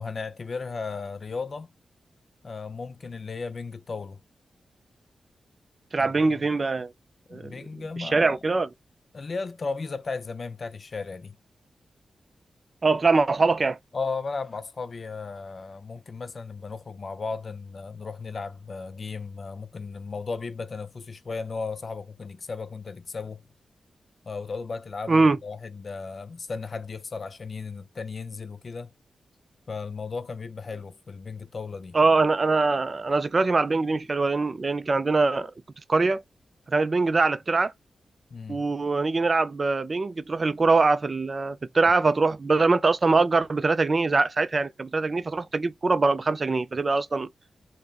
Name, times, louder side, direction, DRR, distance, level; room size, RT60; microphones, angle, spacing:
voice 1, 0.0-1.7 2.4-4.2 6.0-6.4 7.3-8.4 9.1-11.4 13.9-23.5 24.2-28.9 29.7-32.0 38.3-38.7, left 4 dB, 45° left, 0.4 m, -35 dB
voice 2, 5.9-6.9 7.3-7.5 8.0-8.7 12.8-13.8 25.1-25.4 31.9-35.5 35.9-36.2 36.7-37.7 38.5-47.3, right 3 dB, 35° right, 0.3 m, -23 dB
3.5 x 2.0 x 2.3 m
wide cardioid pair, 140°, 0 cm